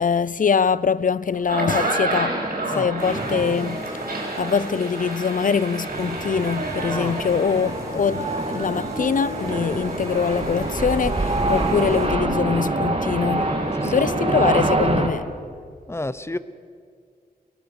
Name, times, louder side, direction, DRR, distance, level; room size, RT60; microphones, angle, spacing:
voice 1, 0.0-2.4 2.7-4.0 4.4-13.5 13.8-15.3, left 6 dB, 55° left, 0.5 m, -23 dB
sound 1, 1.3-14.7, right 2 dB, 70° right, 6.5 m, -30 dB
sound 2, 3.0-12.1, right 1 dB, 20° right, 7.5 m, -51 dB
sound 3, 5.9-15.1, right 2 dB, 40° right, 2.2 m, -26 dB
voice 2, 13.8-14.1 15.9-16.4, left 2 dB, 15° left, 0.8 m, -30 dB
22.0 x 20.5 x 7.1 m
wide cardioid pair, 80°, 16 cm